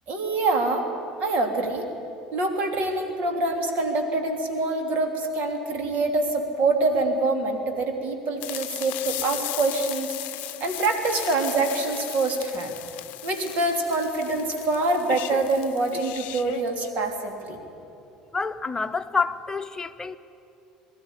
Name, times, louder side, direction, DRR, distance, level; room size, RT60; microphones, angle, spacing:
voice 1, 0.1-0.9 1.2-1.9 2.3-12.7 13.2-17.6, right 2 dB, 55° right, 4 dB, 3.2 m, -25 dB
sound 1, 8.4-16.9, left 16 dB, 60° left, 0.7 m, -36 dB
voice 2, 18.3-20.2, left 4 dB, 20° left, 8 dB, 1.1 m, -28 dB
22.0 x 13.5 x 9.9 m, 2.7 s
hypercardioid pair, 70°, 3 cm